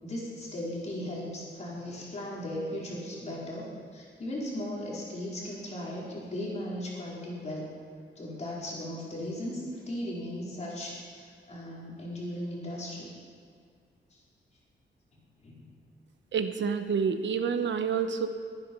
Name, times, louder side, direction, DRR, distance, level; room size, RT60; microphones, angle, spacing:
voice 1, 0.0-3.7 3.9-7.7 8.2-13.1 14.1-14.2 15.1-15.6, left 1 dB, 35° left, -5 dB, 4.6 m, -37 dB
voice 2, 16.3-18.3, right 6 dB, 70° right, 8 dB, 1.0 m, -28 dB
22.5 x 10.0 x 5.5 m, 2.1 s
wide cardioid pair, 160°, 19 cm